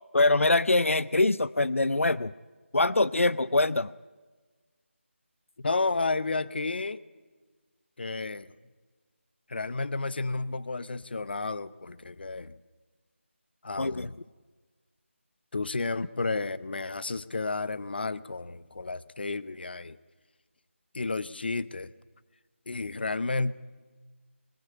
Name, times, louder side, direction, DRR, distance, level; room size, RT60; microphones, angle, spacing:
voice 1, 0.1-2.3 2.7-3.9 13.8-14.1, left 2 dB, 85° left, 18 dB, 0.6 m, -24 dB
voice 2, 5.6-7.0 8.0-8.5 9.5-12.5 13.6-14.1 15.5-20.0 20.9-21.9 22.7-23.5, left 3 dB, 50° left, 17 dB, 0.8 m, -31 dB
21.5 x 16.0 x 8.7 m, 1.4 s
figure-of-eight pair, 165°, 7 cm